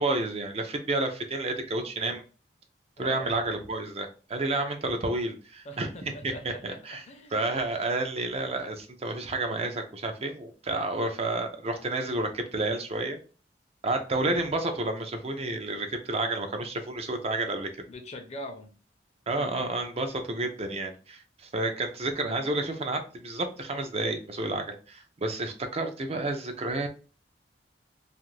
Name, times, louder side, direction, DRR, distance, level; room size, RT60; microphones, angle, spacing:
voice 1, 0.0-2.2 3.0-5.9 6.2-7.0 7.3-13.2 13.8-17.7 19.3-26.9, right 2 dB, 35° right, 5 dB, 0.5 m, -30 dB
voice 2, 3.0-3.3 5.6-7.4 17.9-18.7 19.4-19.7, left 1 dB, 40° left, 4 dB, 0.6 m, -42 dB
2.5 x 2.5 x 3.1 m, 0.36 s
head